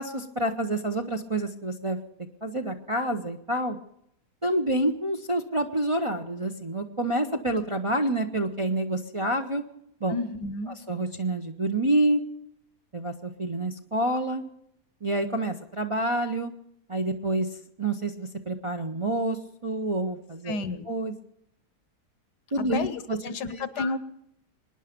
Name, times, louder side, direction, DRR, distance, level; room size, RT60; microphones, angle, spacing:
voice 1, 0.0-2.0 2.4-3.8 4.4-9.6 10.0-10.1 10.9-12.2 12.9-14.4 15.0-16.5 16.9-17.5 17.8-20.6 20.9-21.1 22.5-23.2 23.8-23.9, right 1 dB, 30° right, 3 dB, 0.6 m, -28 dB
voice 2, 10.1-10.7 20.4-20.8 22.7-24.0, left 3 dB, 85° left, 14 dB, 1.6 m, -31 dB
24.0 x 10.0 x 5.2 m, 0.76 s
omnidirectional pair, 1.7 m